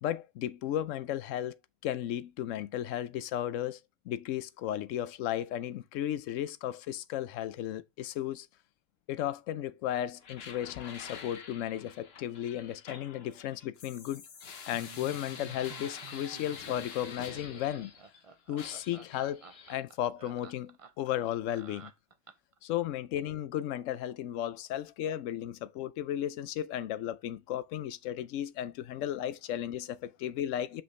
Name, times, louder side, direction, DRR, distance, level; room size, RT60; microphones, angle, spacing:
voice 1, 0.0-1.6 1.8-3.8 4.0-8.5 9.1-14.2 14.7-17.9 18.5-19.4 19.7-21.9 22.6-30.8, left 11 dB, 75° left, 0.9 m, -34 dB
sound 1, 10.2-18.2 18.6-19.8, left 6 dB, 55° left, 1.1 m, -47 dB
Laughter, 14.7-22.6, right 6 dB, 50° right, 0.4 m, -52 dB
5.9 x 5.2 x 3.2 m
omnidirectional pair, 1.3 m